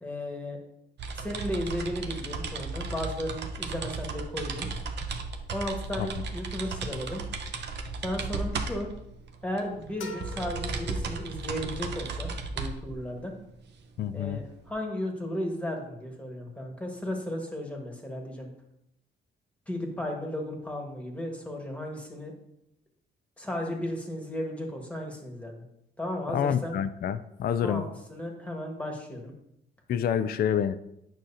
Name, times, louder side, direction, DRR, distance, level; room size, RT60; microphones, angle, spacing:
voice 1, 0.0-0.6 1.1-4.7 5.5-7.2 8.0-8.9 9.4-13.3 14.1-18.5 19.7-22.3 23.4-25.6 26.0-26.8 27.6-29.3, left 1 dB, 5° left, 0 dB, 1.6 m, -35 dB
sound 1, 1.0-14.7, right 4 dB, 60° right, 0.8 m, -35 dB
sound 2, 10.0-11.8, left 3 dB, 85° left, 1.0 m, -44 dB
voice 2, 14.0-14.4 26.3-27.8 29.9-30.8, left 8 dB, 50° left, 12 dB, 0.4 m, -27 dB
9.0 x 6.2 x 2.8 m, 0.80 s
cardioid pair, 90°, 20 cm